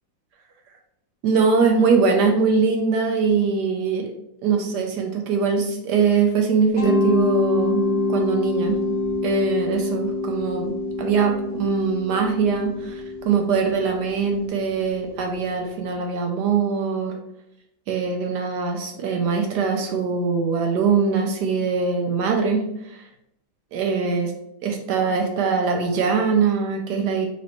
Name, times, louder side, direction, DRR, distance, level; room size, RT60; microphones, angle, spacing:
voice 1, 1.2-4.1 4.4-7.8 8.1-8.8 9.2-17.1 17.9-23.0 23.7-24.3 24.6-27.3, right 5 dB, 75° right, 3 dB, 1.0 m, -22 dB
Mallet percussion, 6.8-15.5, left 2 dB, 30° left, 1.3 m, -26 dB
4.3 x 2.9 x 3.0 m, 0.81 s
omnidirectional pair, 2.1 m